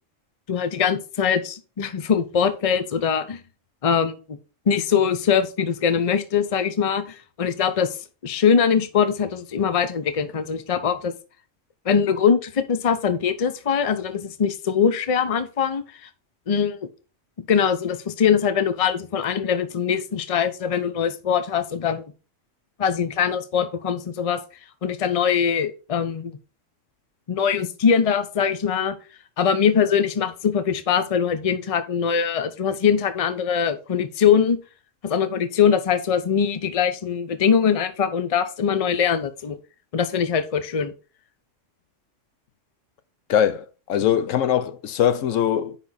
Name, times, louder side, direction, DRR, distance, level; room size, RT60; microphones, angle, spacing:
voice 1, 0.5-3.4 3.8-4.4 4.7-7.9 8.2-11.1 11.8-16.1 16.5-16.9 17.5-22.1 22.8-24.4 24.8-26.4 27.3-29.0 29.4-34.6 35.0-39.6 39.9-40.9, left 7 dB, 35° left, 0.6 m, -22 dB
voice 2, 43.3-45.8, left 9 dB, 85° left, 1.1 m, -22 dB
9.5 x 4.1 x 4.1 m
omnidirectional pair, 1.3 m